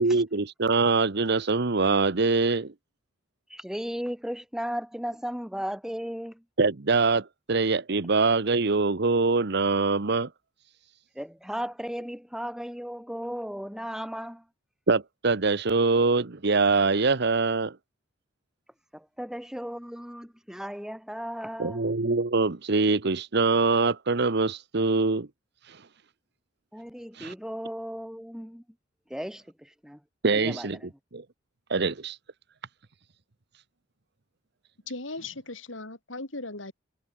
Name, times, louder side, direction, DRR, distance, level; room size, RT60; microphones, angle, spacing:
voice 1, 0.0-2.7 6.6-10.3 14.9-17.8 21.6-25.3 27.2-27.3 30.2-30.8 31.1-31.2 31.7-32.2, right 3 dB, 60° right, 1.0 m, -24 dB
voice 2, 3.5-6.3 11.2-14.4 19.2-21.9 26.7-28.6 29.1-29.4 29.8-30.0 30.3-30.7, equal, 5° right, 3.5 m, -35 dB
voice 3, 34.9-36.7, left 2 dB, 80° left, 5.0 m, -37 dB
head